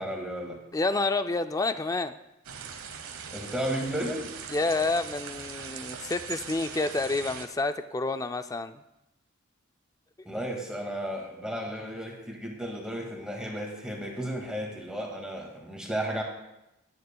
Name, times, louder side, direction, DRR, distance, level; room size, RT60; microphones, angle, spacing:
voice 1, 0.0-0.6 3.3-4.3 10.2-16.2, equal, 5° right, -1 dB, 1.9 m, -33 dB
voice 2, 0.7-2.2 4.5-8.8, left 3 dB, 15° left, 10 dB, 0.3 m, -29 dB
sound 1, 2.4-7.5, right 7 dB, 85° right, 1.1 m, -41 dB
18.5 x 9.6 x 2.3 m, 0.90 s
head